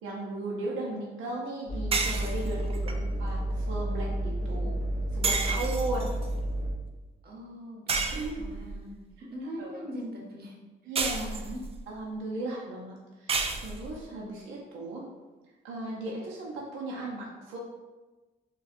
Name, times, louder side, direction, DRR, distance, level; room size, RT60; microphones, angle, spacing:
voice 1, 0.0-2.6 3.2-4.7 5.1-6.2 8.1-8.5 9.6-9.8 10.9-11.3 11.9-15.0 15.6-17.6, right 2 dB, 85° right, -3 dB, 0.6 m, -36 dB
sound 1, 1.7-6.7, right 1 dB, 35° left, 1.2 m, -31 dB
sound 2, 1.9-2.9 5.2-6.3 7.9-8.7 11.0-11.8 13.3-14.0, right 4 dB, 30° right, 0.3 m, -31 dB
voice 2, 2.4-2.9 4.4-4.7 7.2-8.0 8.4-10.5 10.8-11.0 11.3-11.6, equal, 55° right, -1 dB, 0.9 m, -42 dB
4.1 x 2.3 x 2.5 m, 1.2 s
cardioid pair, 90°, 20 cm